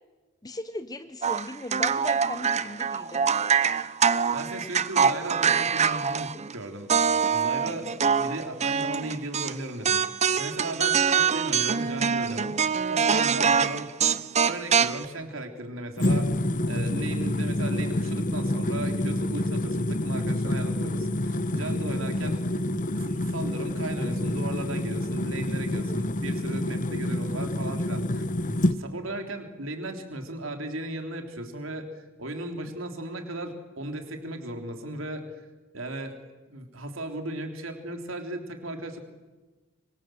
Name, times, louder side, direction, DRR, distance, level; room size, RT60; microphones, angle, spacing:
voice 1, 0.4-3.3, left 2 dB, 20° left, 10 dB, 0.8 m, -38 dB
sound 1, 1.2-6.5 6.9-9.5 9.8-15.0, right 6 dB, 35° right, 0.7 m, -24 dB
voice 2, 4.3-6.9 7.3-7.9 8.2-10.0 10.4-12.6 12.9-13.9 14.4-35.5 35.7-36.2 36.5-39.0, right 1 dB, 75° right, 5 dB, 3.5 m, -36 dB
sound 2, 16.0-28.8, left 1 dB, 40° left, 1.1 m, -28 dB
25.5 x 24.0 x 7.8 m, 1.2 s
head